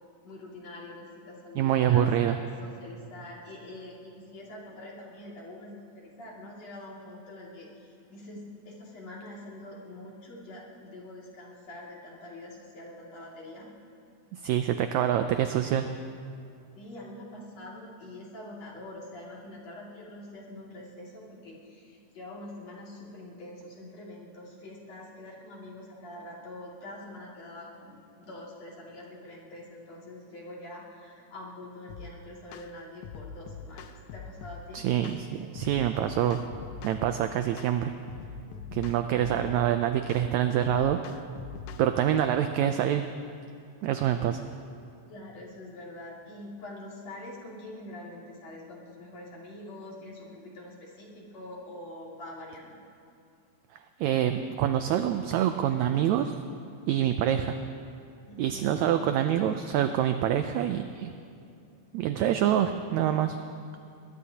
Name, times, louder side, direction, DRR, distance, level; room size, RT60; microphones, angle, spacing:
voice 1, 0.2-13.7 16.7-34.9 38.5-38.6 40.5-40.6 41.7-41.9 45.1-52.8 58.3-58.8, left 1 dB, 55° left, -5 dB, 3.5 m, -45 dB
voice 2, 1.6-2.4 14.3-15.9 34.7-36.4 36.8-37.9 38.7-41.2 41.8-43.0 43.8-44.4 54.0-56.3 56.9-57.6 58.4-61.1 61.9-63.4, right 10 dB, 80° right, 8 dB, 1.6 m, -26 dB
sound 1, 31.9-32.1 32.5-32.7 33.0-34.6 35.0-35.2 35.6-37.2 37.6-37.8 38.1-39.7 40.1-40.3 40.6-41.9, left 6 dB, 80° left, 2.1 m, -42 dB
22.5 x 21.5 x 2.9 m, 2.5 s
omnidirectional pair, 3.8 m